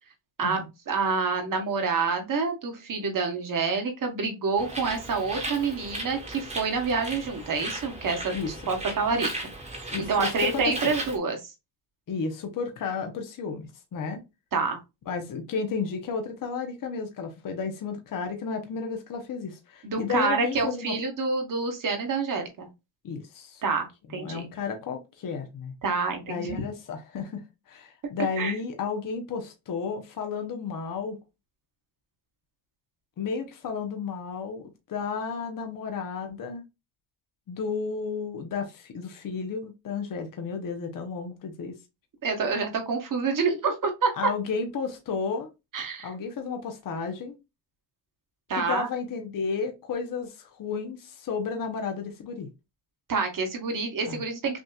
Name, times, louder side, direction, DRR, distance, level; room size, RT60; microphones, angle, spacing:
voice 1, 0.9-9.3 10.0-11.5 14.5-14.8 19.8-22.7 23.6-24.4 25.8-26.6 28.4-28.6 42.2-44.3 45.7-46.1 48.5-48.9 53.1-54.6, right 4 dB, 45° right, 1.2 m, -27 dB
Bird, 4.6-11.2, right 1 dB, 15° right, 1.2 m, -36 dB
voice 2, 9.9-10.9 12.1-14.2 15.1-21.0 23.0-23.6 24.1-25.7 26.3-31.2 33.2-36.6 37.5-41.8 44.2-45.5 46.0-47.3 48.6-52.5 54.1-54.2, left 5 dB, 45° left, 0.8 m, -32 dB
6.1 x 2.8 x 2.3 m
wide cardioid pair, 160°, 46 cm